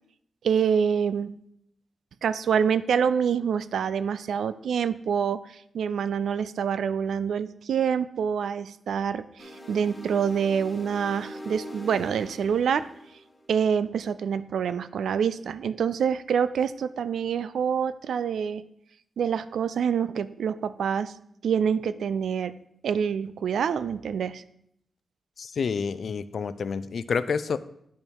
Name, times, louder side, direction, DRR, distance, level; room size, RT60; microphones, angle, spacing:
voice 1, 0.4-1.4 2.2-5.4 5.7-12.9 13.5-18.6 19.2-21.1 21.4-22.6 22.8-24.4, right 7 dB, 85° right, 15 dB, 0.3 m, -26 dB
sound 1, 9.4-13.7, equal, 15° left, 1.5 m, -42 dB
voice 2, 25.4-27.6, left 5 dB, 65° left, 14 dB, 0.4 m, -28 dB
8.8 x 5.4 x 4.6 m, 0.75 s
cardioid pair, 85°, 0 cm